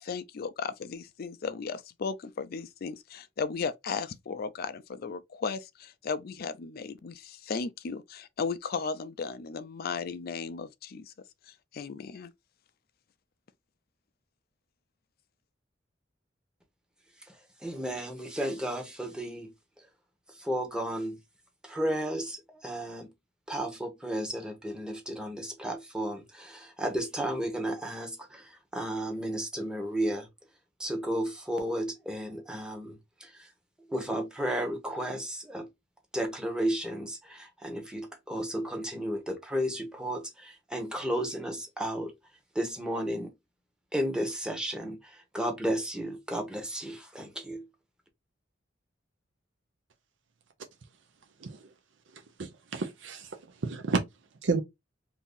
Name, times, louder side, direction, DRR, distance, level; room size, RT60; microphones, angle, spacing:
voice 1, 0.0-11.1 11.5-12.3, left 5 dB, 55° left, 0.4 m, -36 dB
voice 2, 17.6-19.5 20.4-21.2 21.6-23.1 23.5-30.3 30.8-33.3 33.9-35.7 36.1-42.1 42.5-43.3 43.9-47.6, right 1 dB, 5° right, 0.8 m, -33 dB
voice 3, 52.4-53.3 53.6-54.0 54.4-54.6, right 4 dB, 75° right, 0.6 m, -30 dB
2.7 x 2.6 x 3.7 m
head